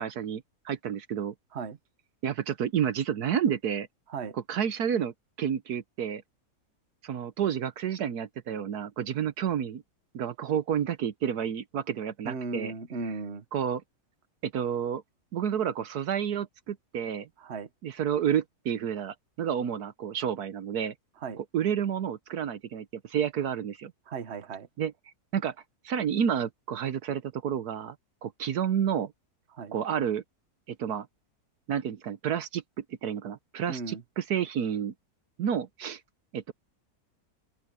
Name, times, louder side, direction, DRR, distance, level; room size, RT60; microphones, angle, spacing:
voice 1, 0.0-1.3 2.2-3.9 4.3-6.2 7.0-9.8 10.1-12.7 13.5-13.8 14.4-15.0 15.3-17.3 17.8-20.9 21.4-23.9 24.8-24.9 25.3-25.5 25.8-27.9 28.2-29.1 29.7-30.2 30.7-31.1 31.7-34.9 35.4-36.0 36.3-36.5, right 8 dB, 75° right, 1.4 m, -30 dB
voice 2, 12.2-13.4 17.4-17.7 21.2-21.4 24.1-24.7 29.5-29.7 33.7-34.0, right 4 dB, 45° right, 1.4 m, -36 dB
open air
omnidirectional pair, 1.7 m